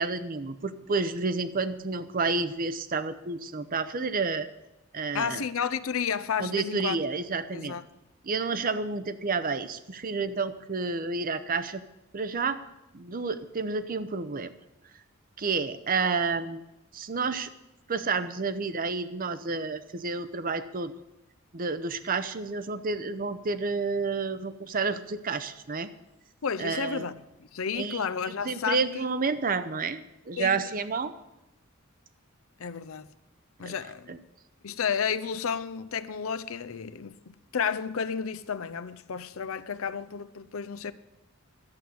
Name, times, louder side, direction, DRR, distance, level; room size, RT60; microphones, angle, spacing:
voice 1, 0.0-4.5 4.9-5.4 6.4-7.8 8.2-11.8 12.1-12.6 12.9-14.5 15.4-16.6 16.9-17.5 17.9-20.9 21.5-25.9 26.6-27.0 27.7-30.0 30.3-31.1 33.6-33.7 34.1-34.2, right 4 dB, 40° right, 0.7 m, -30 dB
voice 2, 5.1-7.0 7.5-7.9 26.4-28.8 30.4-30.6 32.6-33.1 33.6-34.1 34.6-40.9, left 6 dB, 75° left, 0.6 m, -32 dB
11.5 x 7.9 x 8.4 m
head